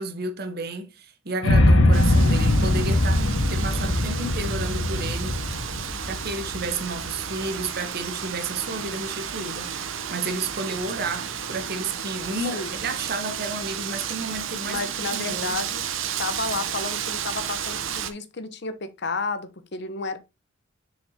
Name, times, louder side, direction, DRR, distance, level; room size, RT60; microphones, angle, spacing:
voice 1, 0.0-5.4 6.0-9.7 10.1-14.8 15.1-15.6, right 3 dB, 50° right, 1.0 m, -32 dB
sound 1, 1.4-7.5, left 1 dB, 90° left, 1.0 m, -21 dB
Wind, 1.9-18.1, right 8 dB, 85° right, 0.8 m, -32 dB
voice 2, 14.6-15.8 16.2-20.2, left 3 dB, 60° left, 0.9 m, -31 dB
6.9 x 5.1 x 2.8 m
head